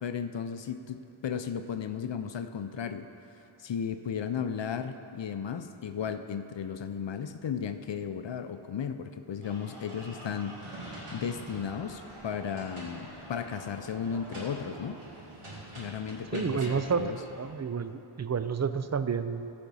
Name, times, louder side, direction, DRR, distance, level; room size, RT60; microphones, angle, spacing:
voice 1, 0.0-15.0 15.7-17.2, left 7 dB, 60° left, 9 dB, 0.6 m, -35 dB
sound 1, 9.4-17.5, right 1 dB, 90° right, 2.3 m, -45 dB
voice 2, 16.3-19.5, right 6 dB, 35° right, 11 dB, 0.4 m, -30 dB
14.5 x 5.3 x 5.4 m, 2.9 s
wide cardioid pair, 65°, 49 cm